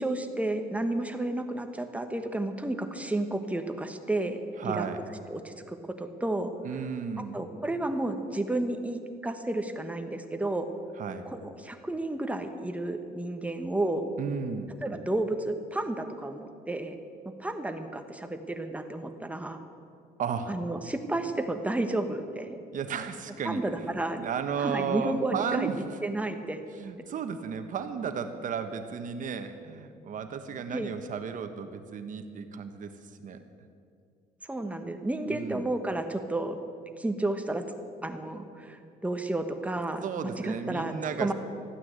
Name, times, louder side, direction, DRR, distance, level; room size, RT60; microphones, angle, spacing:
voice 1, 0.0-4.9 5.3-6.5 7.3-10.7 11.3-14.0 14.8-17.0 17.4-19.6 20.5-22.6 23.4-24.2 24.6-25.7 26.0-26.6 30.7-30.9 34.4-36.6 37.0-37.6 38.0-40.0 40.4-40.9 41.2-41.3, right 2 dB, 10° right, 6 dB, 1.2 m, -31 dB
voice 2, 4.6-5.0 6.6-7.4 11.0-11.3 14.2-14.7 20.2-20.6 22.7-25.8 26.7-32.9 33.2-33.4 35.3-35.7 40.0-41.3, right 6 dB, 50° right, 8 dB, 1.3 m, -34 dB
14.0 x 9.5 x 8.2 m, 2.5 s
cardioid pair, 110°, 17 cm